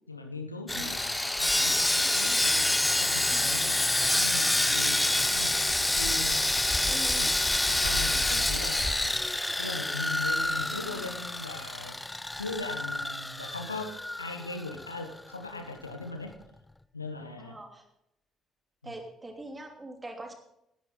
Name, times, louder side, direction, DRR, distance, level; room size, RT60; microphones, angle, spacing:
voice 1, 0.1-3.8 4.2-7.3 7.7-9.1 9.6-12.0 12.4-16.3 16.9-17.6 18.8-18.9, left 3 dB, 85° left, 6 dB, 1.1 m, -39 dB
Sawing, 0.7-14.9 15.2-15.4 15.8-16.0, left 1 dB, 10° left, 0.6 m, -27 dB
voice 2, 6.9-7.3 8.3-8.4 17.4-17.8 18.8-20.3, right 2 dB, 20° right, 3 dB, 2.9 m, -43 dB
17.0 x 10.5 x 3.9 m, 0.78 s
figure-of-eight pair, 50°, 0 cm